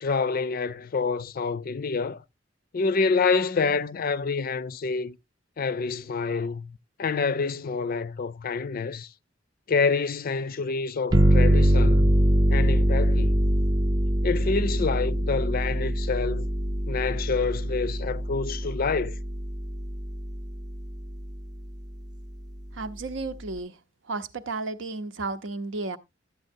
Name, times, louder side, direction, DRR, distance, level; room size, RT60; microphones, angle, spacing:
voice 1, 0.0-2.2 2.7-5.2 5.6-6.7 7.0-9.1 9.7-12.1 12.5-13.4 14.2-16.5 16.9-19.1, left 4 dB, 50° left, 0.4 m, -27 dB
sound 1, 11.1-20.4, equal, 20° right, 0.5 m, -23 dB
voice 2, 22.7-23.8 24.0-26.0, right 3 dB, 75° right, 0.7 m, -33 dB
12.0 x 8.2 x 2.6 m
head